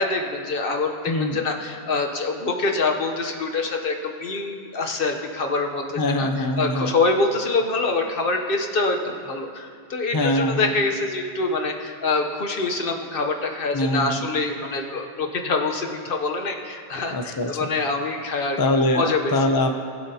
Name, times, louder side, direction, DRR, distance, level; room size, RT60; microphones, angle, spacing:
voice 1, 0.0-6.3 6.6-18.6 18.9-19.3, left 3 dB, 55° left, 3 dB, 1.0 m, -25 dB
voice 2, 1.1-1.5 6.0-6.9 10.1-10.7 13.7-14.3 17.1-17.5 18.6-19.8, left 1 dB, 30° left, 6 dB, 0.4 m, -23 dB
20.0 x 7.8 x 2.8 m, 2.2 s
omnidirectional pair, 1.2 m